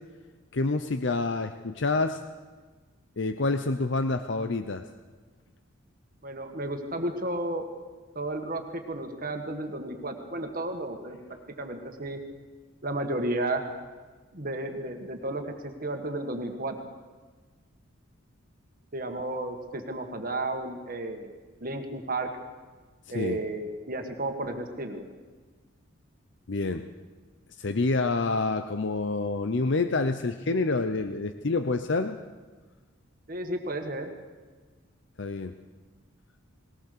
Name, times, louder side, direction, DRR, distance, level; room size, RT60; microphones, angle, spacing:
voice 1, 0.5-2.2 3.2-4.8 23.1-23.4 26.5-26.9 27.6-32.2 35.2-35.5, left 3 dB, 55° left, 9 dB, 0.7 m, -27 dB
voice 2, 6.2-7.7 8.1-11.2 11.6-12.2 12.8-13.6 14.3-16.7 18.9-21.3 21.6-22.3 23.1-25.0 33.3-34.1, right 2 dB, 40° right, 5 dB, 1.7 m, -33 dB
20.0 x 19.0 x 6.8 m, 1.4 s
head